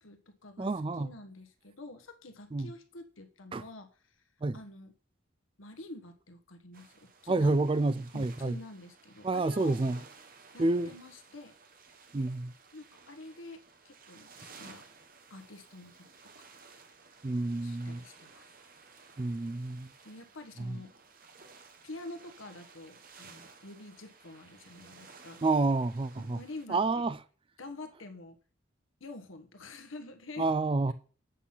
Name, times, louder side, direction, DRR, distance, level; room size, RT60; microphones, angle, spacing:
voice 1, 0.0-3.9 4.5-4.9 5.6-7.5 8.1-9.8 10.5-11.5 12.7-14.8 15.3-16.1 17.6-18.5 20.0-20.9 21.8-25.4 26.2-27.1 27.6-28.4 29.0-30.5, left 2 dB, 85° left, 1.3 m, -47 dB
voice 2, 0.6-1.1 2.5-2.7 3.5-3.6 4.4-4.6 7.3-8.6 9.2-10.0 10.6-10.9 12.1-12.5 17.2-18.0 19.2-19.9 20.6-20.8 25.4-26.4 26.7-27.2 30.4-30.9, right 2 dB, 25° right, 0.4 m, -29 dB
sound 1, 6.7-26.7, right 4 dB, 45° right, 1.2 m, -56 dB
8.2 x 5.8 x 5.6 m
head